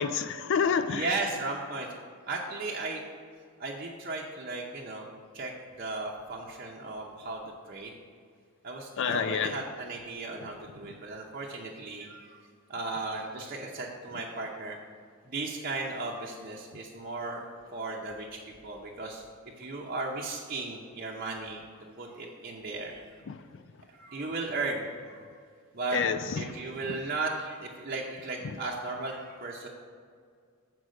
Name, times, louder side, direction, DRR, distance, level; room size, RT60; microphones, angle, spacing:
voice 1, 0.0-1.1 9.0-9.6 23.3-23.4 25.9-26.6 26.8-27.0 28.4-28.6, left 6 dB, 55° left, 0.4 m, -29 dB
voice 2, 0.9-1.9 2.3-3.0 3.6-5.1 5.3-5.5 5.8-7.4 7.7-7.9 8.6-12.4 12.7-14.8 15.3-17.4 17.7-19.3 19.6-21.6 22.0-23.1 23.9-25.2 25.7-26.0 26.4-29.7, right 3 dB, 40° right, 0.7 m, -36 dB
7.8 x 4.6 x 6.4 m
head